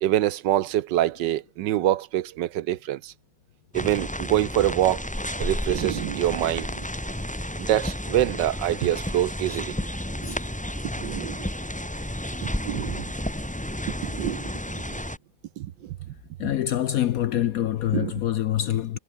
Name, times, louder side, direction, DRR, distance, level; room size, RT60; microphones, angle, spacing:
voice 1, 0.0-3.1 3.7-5.1 5.4-6.9 7.6-9.9 10.2-10.4 11.0-11.5 12.4-13.1 14.0-15.0 15.6-16.1 17.9-18.1, right 13 dB, 75° right, 1.3 m, -26 dB
sound 1, 3.7-15.2, left 1 dB, 5° left, 1.9 m, -32 dB
voice 2, 16.4-19.0, left 12 dB, 65° left, 0.9 m, -25 dB
omnidirectional pair, 2.0 m